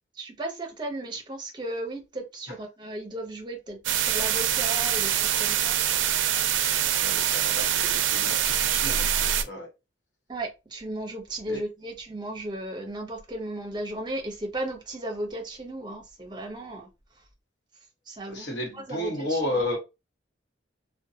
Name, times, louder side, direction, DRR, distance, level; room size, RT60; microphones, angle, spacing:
voice 1, 0.1-5.8 10.3-16.9 18.1-18.5 18.7-19.6, right 1 dB, 25° right, 0.6 m, -35 dB
sound 1, 3.8-9.4, right 10 dB, 80° right, 0.4 m, -24 dB
voice 2, 6.4-9.7 11.5-11.6 18.3-19.8, left 1 dB, 65° left, 1.1 m, -33 dB
2.6 x 2.2 x 2.7 m
head